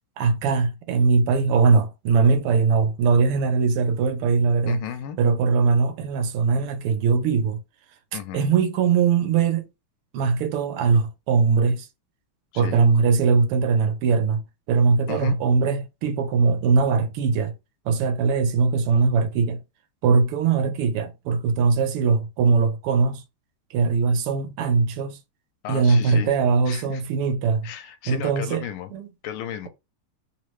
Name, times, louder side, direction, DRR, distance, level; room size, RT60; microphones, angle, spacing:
voice 1, 0.2-4.8 5.2-7.6 8.3-9.7 10.1-11.9 12.5-17.5 17.8-19.6 20.0-23.2 23.7-25.2 25.7-27.7 28.1-28.6 28.9-29.1, right 5 dB, 85° right, 1.6 m, -21 dB
voice 2, 4.7-5.2 8.1-8.5 12.5-12.8 15.1-15.4 25.6-26.3 26.7-27.0 27.6-28.9 29.2-29.7, left 9 dB, 80° left, 1.4 m, -34 dB
3.5 x 2.8 x 3.1 m
omnidirectional pair, 2.4 m